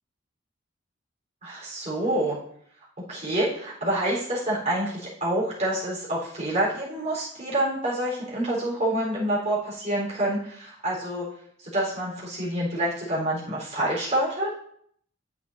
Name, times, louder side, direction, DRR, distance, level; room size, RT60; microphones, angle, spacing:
voice 1, 1.4-2.4 3.1-11.2 11.6-14.5, right 1 dB, 35° right, -6 dB, 3.8 m, -27 dB
9.7 x 8.0 x 2.7 m, 0.65 s
head